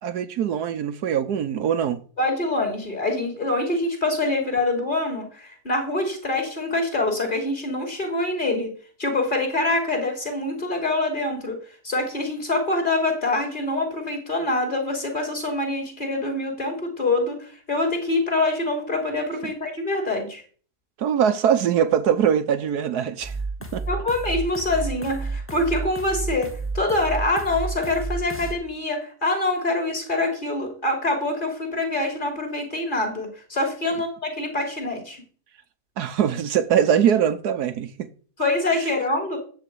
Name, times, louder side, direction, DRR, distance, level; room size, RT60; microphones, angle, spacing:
voice 1, 0.0-2.0 19.4-19.5 21.0-23.4 23.7-23.8 36.0-38.1, right 8 dB, 75° right, 1.4 m, -22 dB
voice 2, 2.2-8.7 9.0-11.6 11.8-20.4 23.9-35.2 38.4-39.4, left 2 dB, 30° left, 3.1 m, -25 dB
sound 1, 23.2-28.5, right 3 dB, 10° left, 1.3 m, -31 dB
13.0 x 4.7 x 8.4 m
omnidirectional pair, 1.8 m